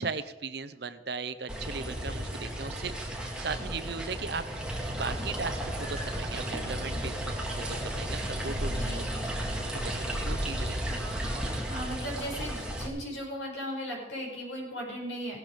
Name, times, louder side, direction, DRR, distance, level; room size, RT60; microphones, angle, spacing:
voice 1, 0.0-4.5 4.9-9.0 9.8-11.0, right 4 dB, 55° right, 13 dB, 0.8 m, -37 dB
sound 1, 1.5-12.9, right 1 dB, 5° right, 2.0 m, -33 dB
voice 2, 8.6-9.5 11.7-15.4, equal, 80° left, -2 dB, 6.2 m, -37 dB
17.0 x 12.0 x 5.1 m, 1.0 s
head